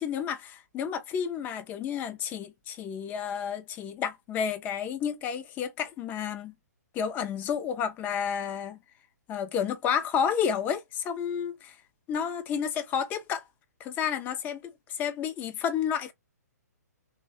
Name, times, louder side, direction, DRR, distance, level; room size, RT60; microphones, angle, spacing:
voice 1, 0.0-6.5 6.9-8.8 9.3-11.8 12.1-13.4 13.8-14.7 15.0-16.1, left 7 dB, 20° left, 0.4 m, -31 dB
2.6 x 2.1 x 2.3 m
figure-of-eight pair, 125°, 9 cm